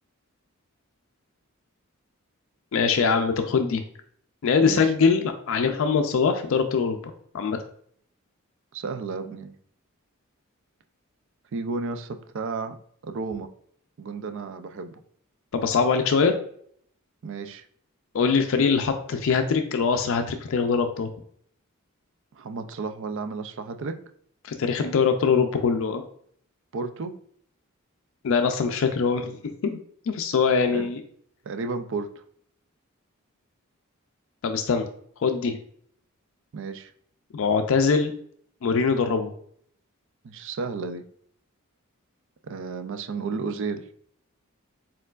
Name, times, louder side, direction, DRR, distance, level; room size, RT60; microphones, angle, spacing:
voice 1, 2.7-3.8 4.4-7.0 7.3-7.6 15.5-16.4 18.1-21.1 24.4-26.0 28.2-29.3 29.6-29.8 30.1-31.0 34.4-34.9 35.2-35.6 37.3-38.1 38.6-39.3, left 5 dB, 65° left, 6 dB, 0.4 m, -22 dB
voice 2, 8.7-9.5 11.5-12.8 13.0-13.5 14.0-15.0 17.2-17.6 22.3-24.0 26.7-27.2 30.7-30.9 31.5-32.1 36.5-36.9 40.2-41.1 42.4-43.8, right 4 dB, 60° right, 8 dB, 0.4 m, -32 dB
4.4 x 3.8 x 2.4 m, 0.63 s
head